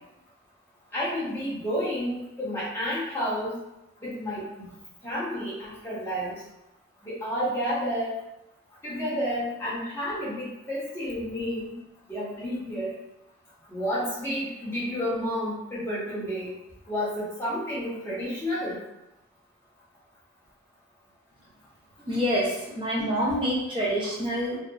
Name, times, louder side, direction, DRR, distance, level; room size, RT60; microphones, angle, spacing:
voice 1, 0.9-3.5 4.0-4.7 5.0-6.4 7.1-8.1 8.8-11.8 12.1-12.9 13.7-16.5 16.9-18.8 22.0-22.2, equal, 10° left, -8 dB, 0.7 m, -30 dB
voice 2, 22.1-24.6, equal, 25° right, -5 dB, 0.5 m, -27 dB
2.7 x 2.1 x 2.2 m, 0.90 s
head